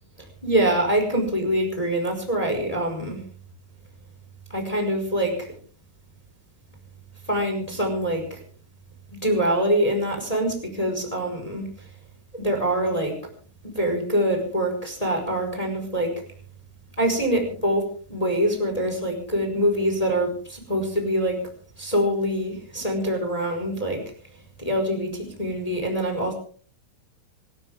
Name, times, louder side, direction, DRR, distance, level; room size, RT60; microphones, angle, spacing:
voice 1, 0.4-3.2 4.5-5.5 7.3-8.4 9.1-11.9 12.3-13.1 13.7-16.1 17.0-17.8 18.1-21.4 21.8-24.0 24.6-26.3, right 1 dB, 5° left, 3 dB, 4.4 m, -24 dB
26.5 x 14.0 x 3.6 m, 0.44 s
omnidirectional pair, 6.0 m